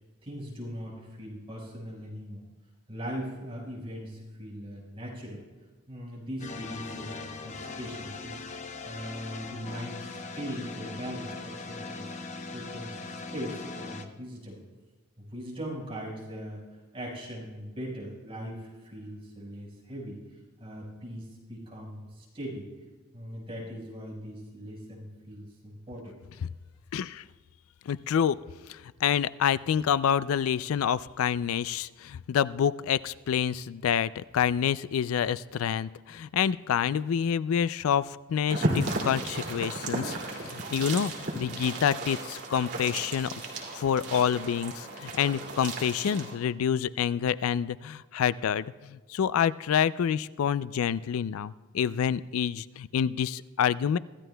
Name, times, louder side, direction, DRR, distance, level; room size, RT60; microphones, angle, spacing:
voice 1, 0.2-2.5 2.9-5.4 5.9-8.4 8.8-12.0 12.5-14.6 15.2-16.6 16.9-20.2 20.6-22.7 23.1-26.2, equal, 30° right, -4 dB, 4.7 m, -40 dB
sound 1, 6.4-14.0, left 3 dB, 35° left, 0.8 m, -40 dB
voice 2, 26.9-27.2 27.9-28.4 28.7-43.3 43.7-54.0, left 8 dB, 85° left, 17 dB, 0.3 m, -27 dB
sound 2, 38.5-46.4, right 2 dB, 55° right, 2.5 m, -34 dB
25.0 x 14.0 x 2.2 m, 1.3 s
head